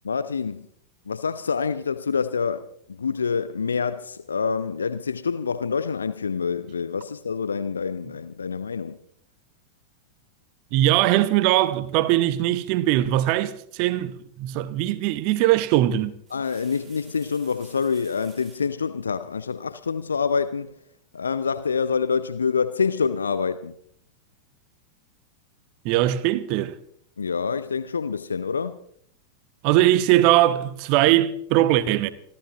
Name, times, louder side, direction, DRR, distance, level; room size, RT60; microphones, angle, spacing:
voice 1, 0.0-0.7 1.1-9.0 16.3-20.7 21.1-23.7 27.2-28.8, left 5 dB, 75° left, 0.5 m, -26 dB
voice 2, 10.7-16.1 25.8-26.7 29.6-32.1, right 14 dB, 45° right, 0.9 m, -20 dB
sound 1, 15.1-15.4 16.0-18.7 20.2-20.9, right 6 dB, 20° right, 5.9 m, -54 dB
27.0 x 13.5 x 2.9 m
figure-of-eight pair, 90°, 0 cm